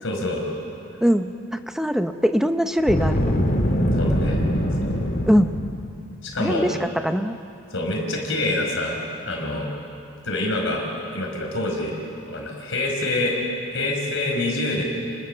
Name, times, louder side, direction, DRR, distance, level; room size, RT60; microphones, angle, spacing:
voice 1, 0.0-0.4 3.9-4.4 4.8-5.0 6.2-6.7 7.7-9.0 9.2-9.7 10.2-10.8 11.1-11.9 12.3-13.3 13.7-14.8, left 2 dB, 60° left, 0 dB, 5.1 m, -26 dB
voice 2, 1.0-3.3 5.3-5.5 6.4-7.4, equal, ahead, 8 dB, 0.7 m, -22 dB
Boom, 2.8-5.9, equal, 45° left, 2.0 m, -22 dB
30.0 x 20.5 x 6.8 m, 2.6 s
head